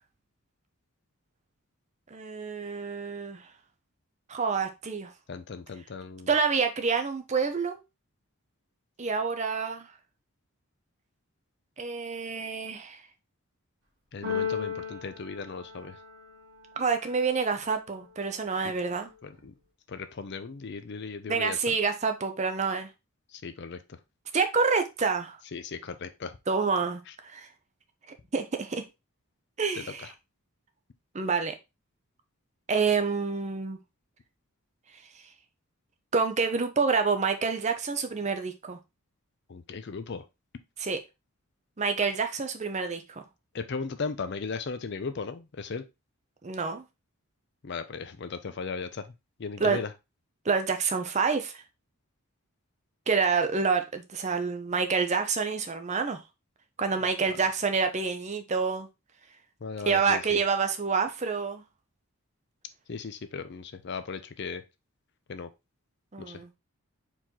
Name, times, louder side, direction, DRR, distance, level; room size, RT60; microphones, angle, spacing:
voice 1, 2.1-3.4 4.3-5.1 6.3-7.8 9.0-9.9 11.8-13.0 16.8-19.1 21.3-22.9 24.3-25.4 26.5-27.5 28.3-28.8 29.6-30.1 31.1-31.5 32.7-33.8 36.1-38.8 40.8-41.0 41.8-43.2 46.4-46.8 49.6-49.8 50.4-51.6 53.1-56.2 56.8-58.9 59.9-61.6 66.1-66.5, right 5 dB, 30° right, 0.5 m, -28 dB
voice 2, 5.3-6.3 14.1-16.0 19.2-19.5 19.9-21.8 23.3-23.8 25.5-26.4 29.7-30.1 39.5-40.2 43.5-45.8 47.6-49.1 49.4-49.9 57.3-57.4 59.6-60.4 62.9-64.6 65.3-65.5 66.2-66.4, left 5 dB, 50° left, 0.5 m, -37 dB
Keyboard (musical), 14.2-16.3, left 6 dB, 50° right, 1.7 m, -34 dB
4.5 x 3.0 x 3.7 m
head